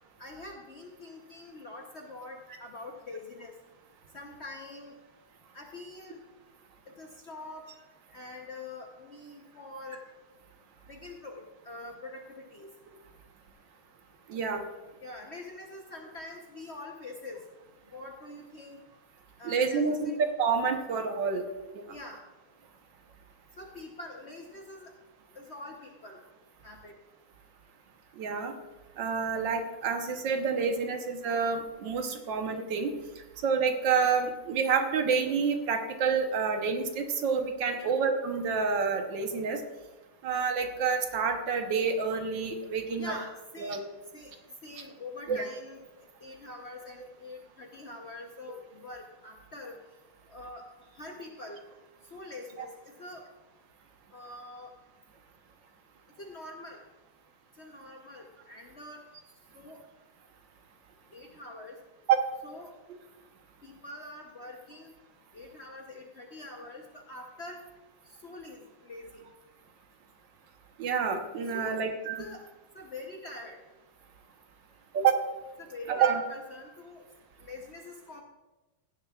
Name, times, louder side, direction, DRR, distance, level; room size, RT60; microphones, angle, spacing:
voice 1, 0.2-3.5 4.1-5.0 5.5-6.2 7.0-7.7 8.1-10.0 10.9-12.7 15.0-17.4 17.9-18.8 19.4-20.2 21.9-22.2 23.6-24.9 25.3-26.2 26.6-26.9 37.7-37.9 43.0-43.8 44.1-44.3 44.6-45.8 46.2-49.7 50.3-50.7 50.9-51.6 52.1-53.3 54.1-54.7 56.2-56.8 57.6-59.1 59.5-59.8 61.1-61.8 62.4-62.8 63.6-64.9 65.3-67.6 68.2-69.2 71.5-71.8 72.2-72.4 72.7-73.6 75.6-77.1 77.4-78.2, left 2 dB, 50° left, 1 dB, 0.8 m, -44 dB
voice 2, 14.3-14.6 19.4-21.4 28.2-28.5 29.0-32.9 33.4-39.6 40.2-43.1 43.6-43.8 45.3-45.4 52.6-52.7 62.1-62.2 70.8-72.2 74.9-75.2 75.9-76.2, right 6 dB, 70° right, 5 dB, 1.6 m, -28 dB
15.5 x 10.5 x 2.4 m, 1.1 s
omnidirectional pair, 2.1 m